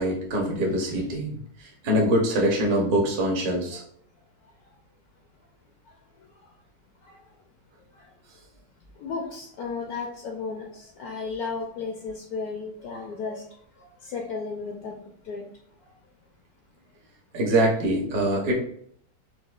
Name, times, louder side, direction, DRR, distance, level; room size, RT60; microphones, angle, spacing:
voice 1, 0.0-1.4 1.8-3.8 17.3-18.5, right 1 dB, 45° right, -2 dB, 0.7 m, -23 dB
voice 2, 9.0-13.4 14.0-14.9 15.2-15.4, left 4 dB, 70° left, 0 dB, 0.9 m, -34 dB
4.7 x 2.2 x 2.3 m, 0.65 s
omnidirectional pair, 1.9 m